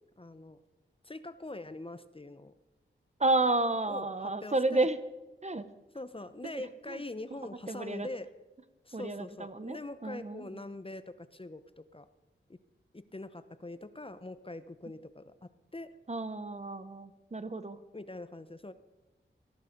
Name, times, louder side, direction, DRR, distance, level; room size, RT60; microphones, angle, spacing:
voice 1, 0.2-0.6 1.0-2.5 3.9-4.9 5.9-8.3 8.8-12.1 12.5-12.6 12.9-15.9 17.9-18.7, left 2 dB, 25° left, 12 dB, 0.9 m, -43 dB
voice 2, 3.2-5.0 5.4-5.7 6.4-6.5 7.7-8.1 8.9-9.8 10.0-10.4 16.1-17.8, right 2 dB, 35° right, 12 dB, 1.1 m, -31 dB
18.5 x 14.5 x 5.3 m, 1.1 s
wide cardioid pair, 85°, 20 cm